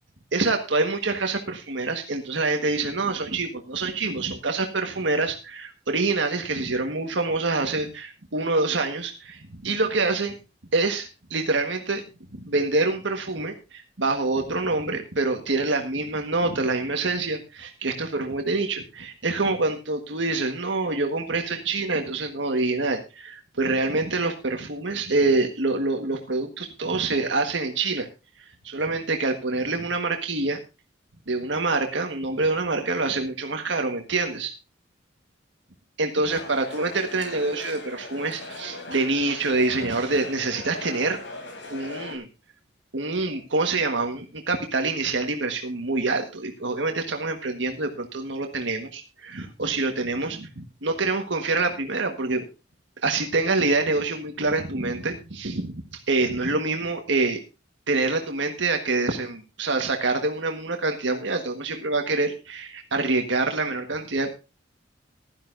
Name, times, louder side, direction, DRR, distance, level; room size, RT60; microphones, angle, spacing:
voice 1, 0.3-10.3 10.7-12.0 12.4-28.1 28.6-30.6 31.3-34.5 36.0-41.2 41.7-42.3 42.9-52.5 53.0-57.4 57.9-64.3, right 3 dB, 70° right, 4 dB, 1.5 m, -26 dB
sound 1, 36.3-42.2, left 2 dB, 70° left, 4.2 m, -39 dB
16.5 x 12.0 x 2.6 m, 0.28 s
head